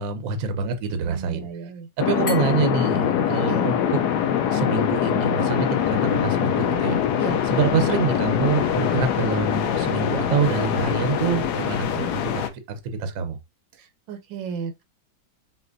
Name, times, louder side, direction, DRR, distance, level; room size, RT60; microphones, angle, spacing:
voice 1, 0.0-1.5 2.0-4.0 4.5-7.0 7.5-12.4 12.7-13.4, right 5 dB, 60° right, 1.0 m, -26 dB
voice 2, 1.0-1.9 3.5-3.7 7.2-7.4 13.7-14.8, right 6 dB, 75° right, 1.3 m, -34 dB
sound 1, 2.0-12.5, left 9 dB, 70° left, 1.0 m, -23 dB
Glass, 2.3-5.0, left 5 dB, 50° left, 2.4 m, -38 dB
5.9 x 2.5 x 2.6 m
omnidirectional pair, 2.1 m